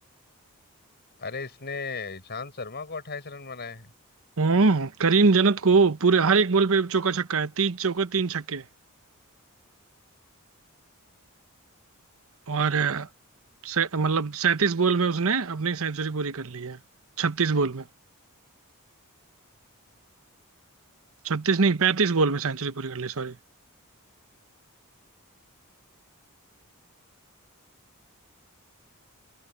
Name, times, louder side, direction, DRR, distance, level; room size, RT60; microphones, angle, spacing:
voice 1, 1.2-3.9, left 4 dB, 50° left, 5.6 m, -36 dB
voice 2, 4.4-8.6 12.5-13.1 13.6-16.8 17.2-17.8 21.2-23.4, right 4 dB, 65° right, 1.0 m, -23 dB
head